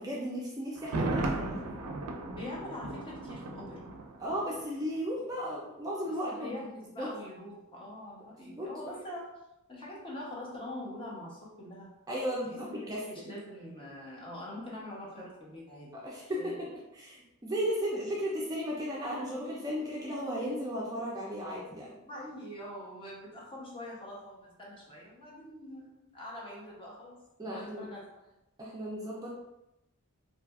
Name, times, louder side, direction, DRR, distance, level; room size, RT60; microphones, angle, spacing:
voice 1, 0.0-1.6 4.2-6.5 7.0-7.1 8.4-8.7 12.1-13.3 15.9-21.9 27.4-27.9 28.6-29.3, equal, 15° right, -4 dB, 0.4 m, -35 dB
Thunder, 0.8-4.7 5.0-5.1, right 2 dB, 90° right, 0.4 m, -36 dB
voice 2, 2.3-3.9 6.1-9.4 9.7-11.9 12.4-16.1 16.3-16.5 22.0-28.3, left 1 dB, 25° left, -4 dB, 0.6 m, -44 dB
2.7 x 2.4 x 2.3 m, 0.88 s
head